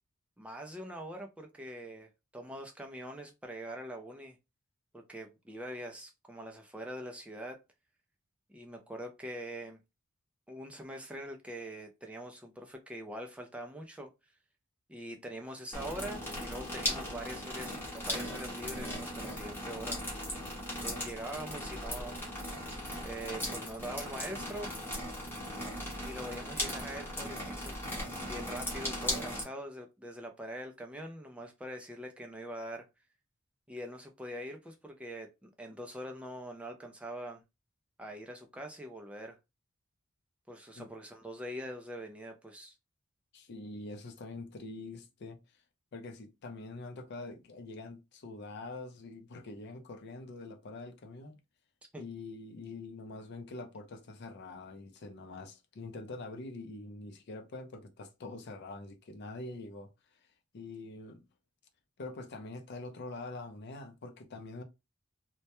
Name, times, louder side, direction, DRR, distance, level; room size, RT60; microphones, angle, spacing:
voice 1, 0.4-4.4 4.9-7.6 8.5-9.8 10.5-14.1 14.9-20.0 20.7-22.2 23.0-24.7 26.0-32.9 33.7-37.4 38.0-39.4 40.5-42.8 51.9-52.1, right 1 dB, 5° right, 0.3 m, -43 dB
sound 1, 15.7-29.4, left 1 dB, 10° left, 0.7 m, -38 dB
voice 2, 43.3-45.4 45.9-51.4 52.0-59.9 60.5-61.3 62.0-64.6, left 3 dB, 55° left, 0.5 m, -44 dB
2.2 x 2.1 x 2.8 m
head